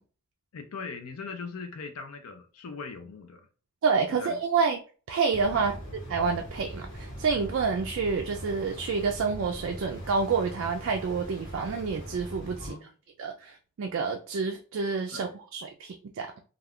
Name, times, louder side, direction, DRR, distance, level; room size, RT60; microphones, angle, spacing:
voice 1, 0.5-3.5 4.1-4.4 5.5-5.8 12.6-12.9 15.1-15.4, left 4 dB, 75° left, 0.5 m, -40 dB
voice 2, 3.8-4.8 5.1-5.7 6.1-12.8 13.2-16.3, right 5 dB, 55° right, 0.3 m, -28 dB
sound 1, 5.3-12.7, equal, 50° left, 1.3 m, -41 dB
2.3 x 2.2 x 3.5 m
head